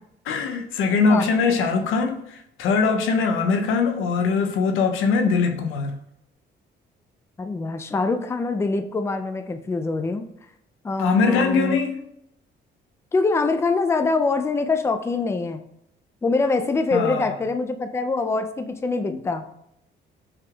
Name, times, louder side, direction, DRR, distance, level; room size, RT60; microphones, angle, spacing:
voice 1, 0.3-6.0 11.0-12.0 16.9-17.3 19.1-19.2, left 4 dB, 90° left, 0.6 m, -22 dB
voice 2, 7.4-10.2 10.8-11.8 13.1-15.6 16.2-19.4, left 3 dB, 15° left, 0.4 m, -24 dB
5.9 x 3.4 x 2.3 m
cardioid pair, 90°, 20 cm